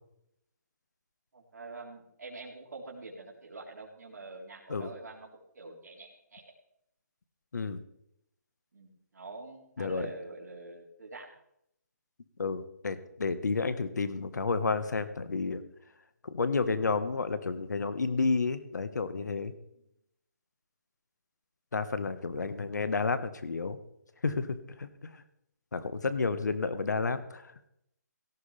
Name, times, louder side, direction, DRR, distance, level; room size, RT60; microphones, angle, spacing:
voice 1, 1.3-5.3 5.5-6.4 8.7-11.3 19.7-19.8, right 3 dB, 65° right, -2 dB, 4.1 m, -45 dB
voice 2, 9.8-10.1 12.4-15.6 16.2-19.5 21.7-23.8 24.2-25.1 25.7-27.5, left 4 dB, 70° left, 12 dB, 1.5 m, -31 dB
17.0 x 14.0 x 3.5 m, 0.77 s
hypercardioid pair, 170°, 10 cm